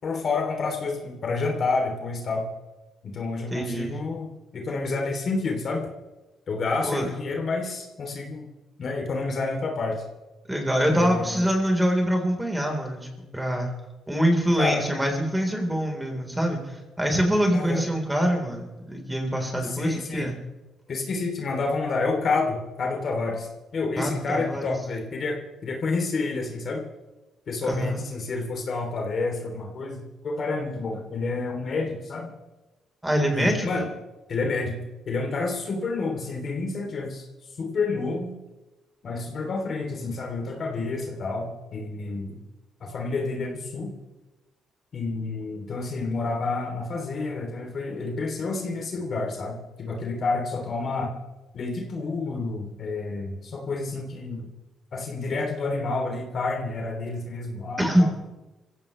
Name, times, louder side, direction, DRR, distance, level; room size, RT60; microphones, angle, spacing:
voice 1, 0.0-2.5 3.0-5.9 6.5-8.5 8.8-10.0 10.9-11.4 14.5-14.8 17.5-17.8 19.6-20.3 20.9-26.9 27.5-32.3 33.3-33.9 34.3-34.8 35.0-37.2 37.6-38.4 39.0-42.4 42.8-43.9 44.9-51.1 51.5-54.5 54.9-58.1, left 3 dB, 55° left, 1 dB, 3.1 m, -29 dB
voice 2, 3.5-4.0 6.8-7.1 10.5-13.1 13.3-13.7 14.1-20.3 24.0-24.8 27.6-28.0 33.0-33.7 57.8-58.1, equal, 10° right, 2 dB, 4.1 m, -24 dB
25.5 x 16.0 x 3.3 m, 1.1 s
cardioid pair, 90°, 0 cm